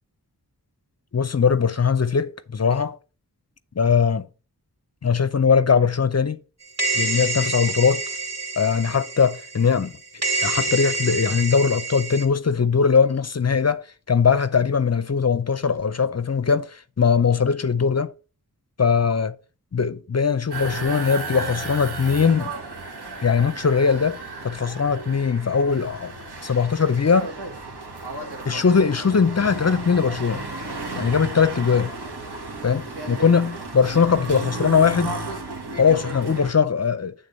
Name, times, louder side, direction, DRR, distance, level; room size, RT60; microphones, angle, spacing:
voice 1, 1.1-3.0 3.8-4.3 5.0-6.4 6.9-8.0 8.6-9.9 10.4-18.1 18.8-19.3 19.7-22.5 23.2-26.1 26.4-27.3 28.5-30.4 30.9-31.9 32.6-35.2 35.8-37.1, left 6 dB, 40° left, 0.5 m, -20 dB
sound 1, 6.8-9.9 10.2-12.3, right 3 dB, 45° right, 2.3 m, -27 dB
sound 2, 20.5-36.5, right 3 dB, 85° right, 1.6 m, -34 dB
8.4 x 3.7 x 5.2 m
wide cardioid pair, 55°, 38 cm